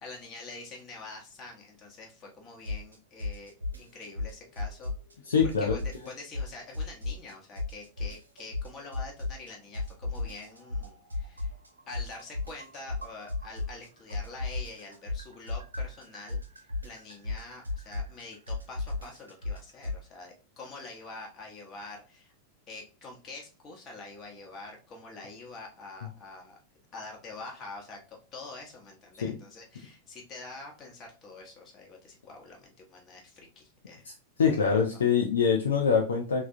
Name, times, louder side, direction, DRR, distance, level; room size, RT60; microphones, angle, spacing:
voice 1, 0.0-4.9 5.6-11.5 11.9-16.4 16.8-22.3 22.7-26.6 26.9-34.1 34.9-35.0, left 3 dB, 30° left, 0 dB, 1.0 m, -46 dB
sound 1, 2.6-2.9 3.2-5.1 5.4-7.3 7.6-9.5 9.7-13.8 14.1-20.0, left 3 dB, 80° right, 0.5 m, -34 dB
voice 2, 5.3-5.8 29.2-29.4 34.4-36.5, left 6 dB, 65° left, 1 dB, 0.4 m, -24 dB
3.4 x 2.2 x 2.6 m, 0.34 s
figure-of-eight pair, 90°, 0 cm